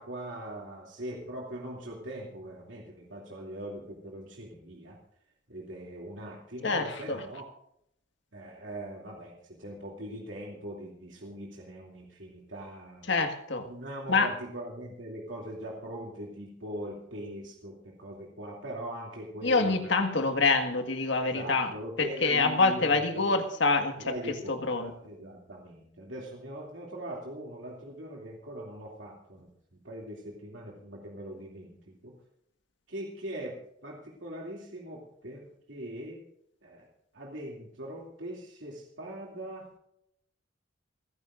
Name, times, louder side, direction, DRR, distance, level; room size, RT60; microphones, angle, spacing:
voice 1, 0.0-5.0 5.5-7.5 8.3-13.1 13.7-19.9 21.2-23.3 24.0-32.1 32.9-36.2 36.6-36.9 37.1-39.7, right 1 dB, 75° right, -2 dB, 2.7 m, -41 dB
voice 2, 6.6-7.2 13.1-13.7 14.1-14.3 19.4-21.7 22.0-24.1 24.5-24.9, left 3 dB, 65° left, 6 dB, 1.7 m, -26 dB
29.5 x 10.5 x 2.6 m, 0.74 s
head